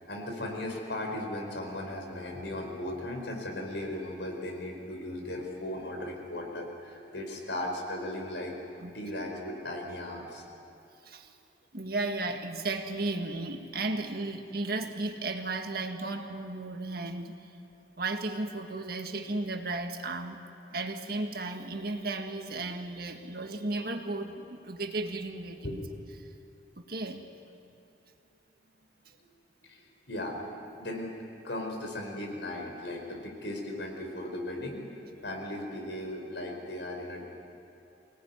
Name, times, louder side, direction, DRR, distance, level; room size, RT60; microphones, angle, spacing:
voice 1, 0.1-8.6 8.9-10.4 25.6-25.8 29.6-30.4 30.8-31.1 31.4-34.8 35.2-37.3, left 1 dB, 85° left, 1 dB, 4.7 m, -37 dB
voice 2, 11.1-11.4 11.7-17.4 18.0-20.4 20.7-25.8 26.8-27.3, right 2 dB, 55° right, 5 dB, 1.8 m, -34 dB
24.5 x 18.5 x 9.6 m, 2.8 s
head